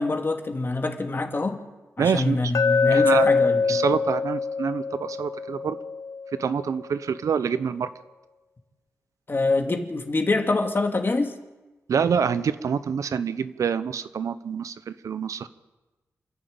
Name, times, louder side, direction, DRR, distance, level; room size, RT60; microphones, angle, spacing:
voice 1, 0.0-1.6 2.0-3.8 9.3-11.4, left 2 dB, 40° left, 4 dB, 2.7 m, -25 dB
voice 2, 2.0-2.5 2.9-3.3 3.7-5.8 6.4-7.9 11.9-14.7 15.0-15.5, right 6 dB, 80° right, 12 dB, 0.9 m, -26 dB
Glass, 2.5-6.7, left 4 dB, 75° left, 0.7 m, -24 dB
28.0 x 11.5 x 8.8 m, 1.1 s
cardioid pair, 60°, 5 cm